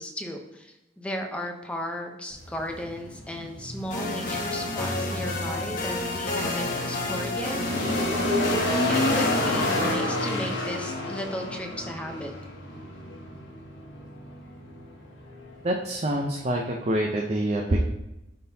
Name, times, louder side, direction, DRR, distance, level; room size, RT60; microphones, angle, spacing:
voice 1, 0.0-8.1 8.9-12.3, equal, 5° left, 2 dB, 0.7 m, -35 dB
sound 1, 2.3-16.8, left 1 dB, 90° left, 1.3 m, -31 dB
sound 2, 3.9-9.9, left 2 dB, 45° left, 1.1 m, -30 dB
voice 2, 15.6-17.9, right 1 dB, 35° right, 0 dB, 0.6 m, -26 dB
11.5 x 3.8 x 2.8 m, 0.98 s
head